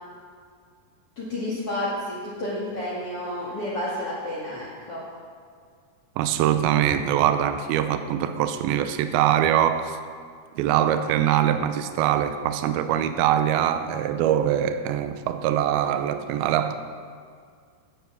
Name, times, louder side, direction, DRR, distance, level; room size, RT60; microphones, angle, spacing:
voice 1, 1.2-5.0, left 1 dB, 40° left, 2.7 m, -30 dB
voice 2, 6.2-10.0 10.6-16.7, right 10 dB, 85° right, 2.5 m, -23 dB
16.5 x 8.6 x 6.3 m
omnidirectional pair, 4.5 m